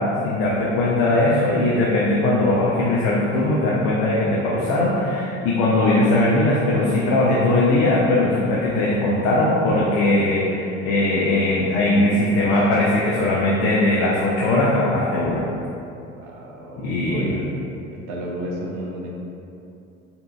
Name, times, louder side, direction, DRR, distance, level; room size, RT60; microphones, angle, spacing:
voice 1, 0.0-15.4 16.8-17.3, left 2 dB, 45° left, -5 dB, 0.6 m, -20 dB
voice 2, 16.2-17.4 17.9-19.1, right 1 dB, 55° right, -1 dB, 0.7 m, -32 dB
4.1 x 2.7 x 2.3 m, 2.8 s
figure-of-eight pair, 65°, 39 cm